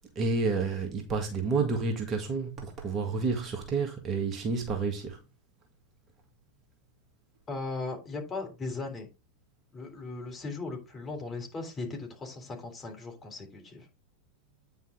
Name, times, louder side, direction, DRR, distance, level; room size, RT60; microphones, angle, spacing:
voice 1, 0.2-5.2, right 4 dB, 30° right, 1.8 m, -30 dB
voice 2, 7.5-9.1 9.7-13.9, left 3 dB, 20° left, 3.4 m, -38 dB
9.3 x 5.7 x 3.8 m
figure-of-eight pair, 90°, 0 cm